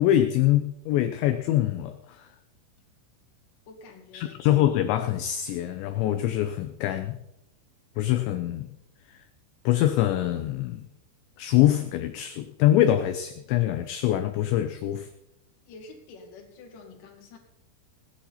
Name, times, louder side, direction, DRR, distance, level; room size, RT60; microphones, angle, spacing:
voice 1, 0.0-2.3 4.1-7.2 8.0-8.7 9.1-9.2 9.7-10.9 11.4-15.1, left 13 dB, 80° left, 8 dB, 2.6 m, -24 dB
voice 2, 3.7-4.4 15.7-17.4, left 3 dB, 50° left, -1 dB, 3.2 m, -47 dB
18.0 x 10.5 x 4.2 m, 0.82 s
omnidirectional pair, 5.9 m